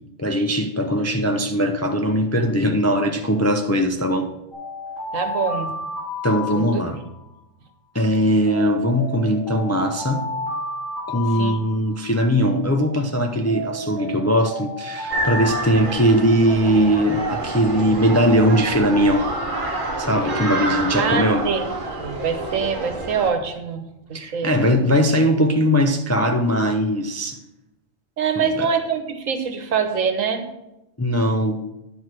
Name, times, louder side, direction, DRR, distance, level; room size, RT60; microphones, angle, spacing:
voice 1, 0.2-4.3 6.2-7.0 7.9-10.3 11.1-19.3 20.0-21.5 24.1-27.4 28.4-28.7 31.0-31.6, equal, 25° left, 4 dB, 0.3 m, -20 dB
Alarm, 4.5-7.1 8.5-12.1 13.5-16.7, left 1 dB, 80° left, 4.4 m, -32 dB
voice 2, 5.1-5.7 6.5-6.8 11.3-11.6 21.0-21.6 21.9-24.5 28.2-30.4, right 6 dB, 85° right, 7 dB, 1.4 m, -24 dB
sound 1, 15.1-23.3, right 2 dB, 40° right, 1.3 m, -28 dB
10.5 x 4.7 x 5.9 m, 0.91 s
omnidirectional pair, 1.3 m